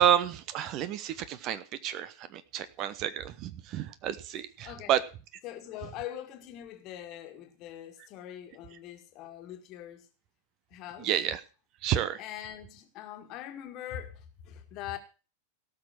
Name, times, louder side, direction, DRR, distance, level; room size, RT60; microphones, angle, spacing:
voice 1, 0.0-5.0 11.0-11.4 11.8-12.2, right 10 dB, 40° right, 0.9 m, -29 dB
voice 2, 4.6-4.9 5.4-10.1 10.7-11.1 12.2-15.0, left 11 dB, 40° left, 1.8 m, -42 dB
17.5 x 6.3 x 6.0 m
figure-of-eight pair, 90°, 0 cm